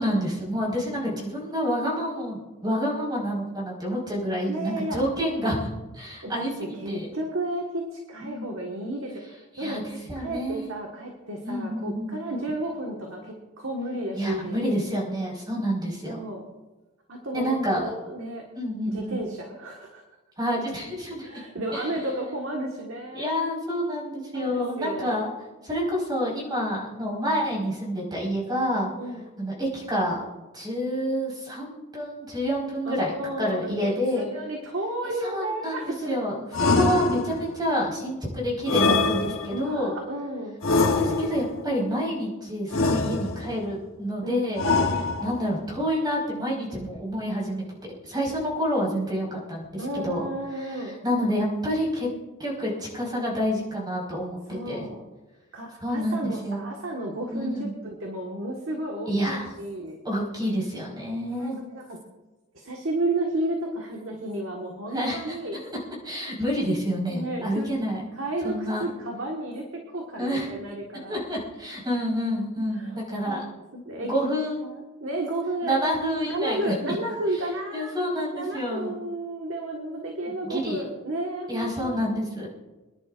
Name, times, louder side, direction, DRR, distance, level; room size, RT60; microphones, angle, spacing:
voice 1, 0.0-5.7 5.9-7.1 8.2-8.5 9.6-9.8 10.1-10.7 11.4-12.2 14.1-16.2 17.3-17.9 18.5-19.2 20.4-21.3 21.7-21.9 23.1-25.3 25.6-28.9 29.4-30.2 30.5-33.1 33.4-34.3 35.2-36.4 36.7-39.9 40.8-47.6 48.0-50.3 50.6-50.7 51.0-52.1 52.4-54.9 55.8-56.7 57.3-57.7 59.1-59.5 60.0-61.6 64.9-65.3 66.0-68.0 68.4-68.9 70.2-70.5 71.1-73.4 74.0-74.6 75.6-76.9 77.7-78.9 80.4-80.8 81.5-82.5, equal, 20° right, -4 dB, 4.7 m, -28 dB
voice 2, 4.5-5.0 6.2-9.8 10.1-14.6 16.0-16.5 17.1-18.5 18.8-20.0 21.2-23.3 24.3-25.2 29.0-29.3 32.8-36.1 39.5-40.6 44.2-44.4 49.8-51.0 54.5-55.0 55.5-60.0 61.3-62.0 62.5-65.6 67.1-67.7 68.2-71.3 72.7-73.0 73.3-73.4 73.7-74.3 74.6-75.8 76.2-77.9 78.3-82.1, right 1 dB, 65° right, 0 dB, 1.6 m, -32 dB
sound 1, 36.5-37.6 38.7-39.7 40.6-41.6 42.7-43.6 44.6-45.5, left 3 dB, 75° left, 1.2 m, -24 dB
27.5 x 10.5 x 2.5 m, 1.2 s
head